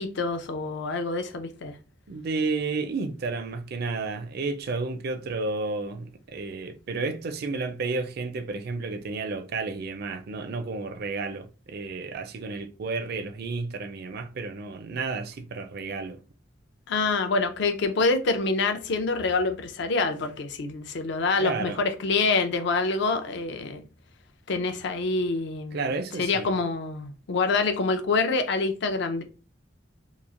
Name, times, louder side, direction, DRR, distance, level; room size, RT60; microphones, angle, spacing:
voice 1, 0.0-1.7 16.9-23.8 24.5-25.8 26.2-29.2, left 3 dB, 65° left, 0.5 m, -26 dB
voice 2, 2.1-16.2 21.4-21.8 25.7-26.6, right 3 dB, 55° right, 0.4 m, -32 dB
3.0 x 2.4 x 2.4 m
head